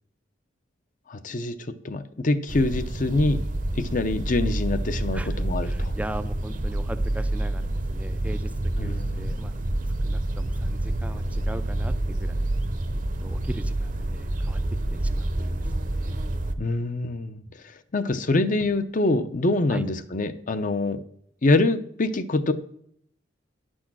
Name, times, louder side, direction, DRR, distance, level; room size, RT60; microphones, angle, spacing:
voice 1, 1.1-1.6 1.8-3.4 3.7-5.9 8.8-9.4 16.6-17.4 17.9-21.0 21.4-22.5, left 2 dB, 45° left, 10 dB, 0.7 m, -25 dB
sound 1, 2.5-16.5, right 1 dB, 45° right, 0.8 m, -28 dB
voice 2, 5.1-8.5 8.8-9.6 10.0-12.5 13.2-14.6 14.9-15.6 15.9-16.2 19.7-19.8, right 1 dB, 5° right, 12 dB, 0.4 m, -38 dB
10.5 x 6.3 x 6.1 m, 0.67 s
head